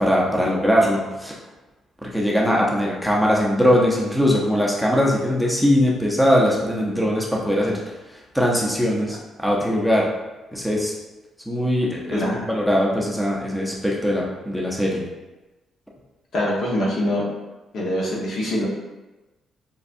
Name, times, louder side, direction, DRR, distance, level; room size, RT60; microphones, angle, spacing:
voice 1, 0.0-1.3 2.0-7.8 8.3-10.1 10.5-10.9 11.5-15.0, equal, ahead, -3 dB, 0.7 m, -21 dB
voice 2, 12.1-12.4 16.3-17.2 17.7-18.7, left 1 dB, 70° left, -4 dB, 1.0 m, -23 dB
5.3 x 2.3 x 2.6 m, 1.1 s
cardioid pair, 90°, 0 cm